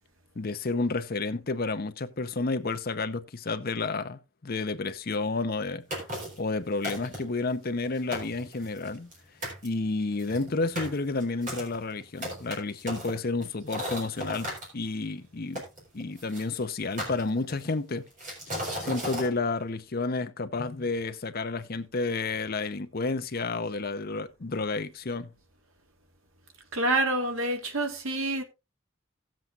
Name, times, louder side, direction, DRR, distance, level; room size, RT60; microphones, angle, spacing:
voice 1, 0.4-6.1 6.4-9.1 9.6-15.6 15.9-18.0 18.8-25.3, left 3 dB, 45° left, 0.7 m, -31 dB
sound 1, 5.9-6.4 6.8-7.4 7.8-7.9 8.1-9.2 9.4-9.7 10.2-14.7 15.5-16.4 17.0-17.7 18.2-19.3, equal, 40° right, 4.2 m, -36 dB
voice 2, 26.7-28.4, right 2 dB, 85° right, 1.8 m, -27 dB
17.5 x 7.7 x 2.5 m
head